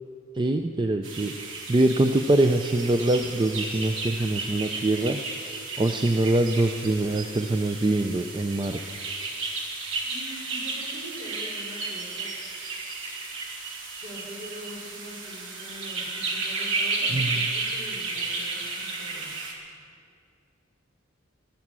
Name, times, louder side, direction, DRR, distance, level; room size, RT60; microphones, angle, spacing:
voice 1, 0.4-1.3 1.7-5.2 5.8-9.0 17.1-17.4, right 2 dB, 25° right, 6 dB, 0.4 m, -24 dB
sound 1, 1.0-19.5, right 3 dB, 85° right, 2.4 m, -33 dB
voice 2, 10.0-12.3 14.0-19.4, equal, 55° right, -3 dB, 4.1 m, -43 dB
14.0 x 12.0 x 7.5 m, 2.3 s
head